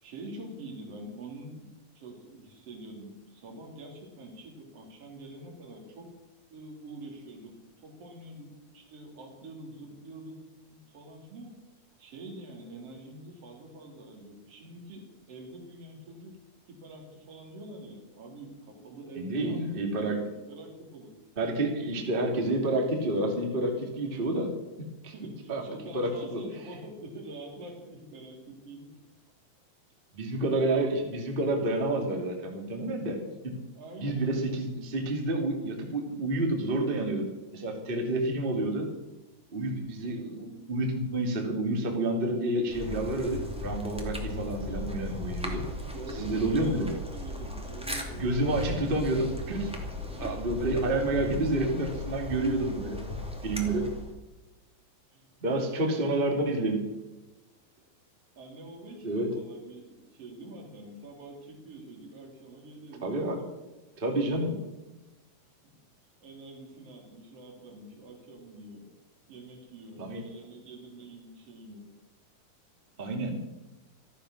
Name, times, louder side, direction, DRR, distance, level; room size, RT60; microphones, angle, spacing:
voice 1, 0.0-6.1 6.5-10.4 10.7-11.5 12.0-16.3 16.7-20.2 20.5-21.1 25.1-28.9 33.8-34.5 37.7-37.8 40.0-40.4 45.8-48.6 50.1-50.6 53.1-53.2 53.8-53.9 55.1-56.2 58.4-63.5 66.2-68.9 69.3-71.9, right 2 dB, 40° right, 0 dB, 4.1 m, -46 dB
voice 2, 19.2-20.2 21.4-24.5 25.0-25.1 25.5-25.6 25.9-26.4 30.1-33.6 34.0-37.3 37.5-38.9 39.5-45.6 46.2-46.9 48.2-49.7 50.2-53.0 53.4-53.9 55.4-56.8 59.0-59.3 63.0-63.4 64.0-64.6 70.0-70.2 73.0-73.4, right 2 dB, 15° right, 2 dB, 2.0 m, -29 dB
sound 1, 42.7-54.1, left 1 dB, ahead, 1.6 m, -37 dB
14.5 x 14.0 x 6.5 m, 1.1 s
omnidirectional pair, 4.3 m